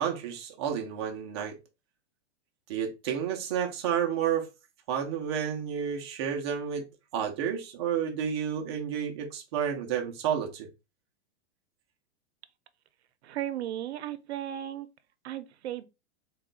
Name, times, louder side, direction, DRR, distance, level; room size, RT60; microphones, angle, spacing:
voice 1, 0.0-1.5 2.7-4.5 4.9-6.9 7.1-10.7, right 8 dB, 25° right, 0.4 m, -30 dB
voice 2, 13.2-14.9 15.2-15.8, right 12 dB, 75° right, 0.6 m, -35 dB
4.1 x 2.2 x 3.7 m
supercardioid pair, 175°, 34 cm